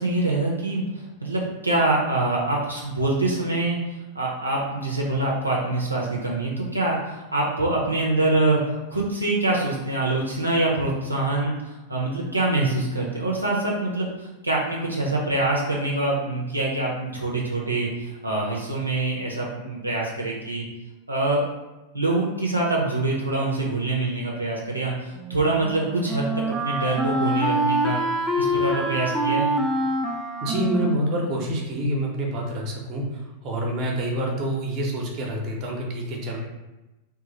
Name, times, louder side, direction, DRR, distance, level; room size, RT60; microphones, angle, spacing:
voice 1, 0.0-3.8 4.1-8.6 8.9-20.7 21.1-21.4 21.9-28.0 28.4-29.5, right 2 dB, 85° right, -3 dB, 0.6 m, -25 dB
Wind instrument woodwind instrument, 25.1-32.0, right 1 dB, ahead, 0.4 m, -26 dB
voice 2, 30.4-36.4, right 1 dB, 35° right, -1 dB, 0.8 m, -27 dB
3.1 x 2.2 x 3.9 m, 1.0 s
figure-of-eight pair, 90°, 0 cm